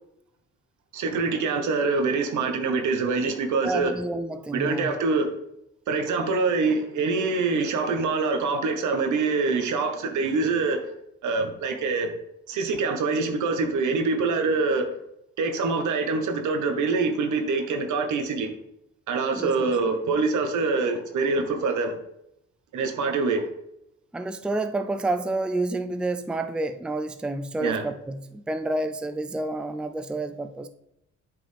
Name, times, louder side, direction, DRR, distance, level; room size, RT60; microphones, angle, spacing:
voice 1, 0.9-3.9 4.5-5.3 5.9-10.8 11.2-12.1 12.5-14.9 15.4-18.5 19.1-22.0 22.7-23.4 27.6-27.9, right 4 dB, 75° right, 6 dB, 1.3 m, -25 dB
voice 2, 3.6-4.9 19.3-19.7 24.1-30.7, right 2 dB, 5° right, 8 dB, 0.4 m, -29 dB
8.5 x 5.1 x 3.4 m, 0.79 s
cardioid pair, 90°, 30 cm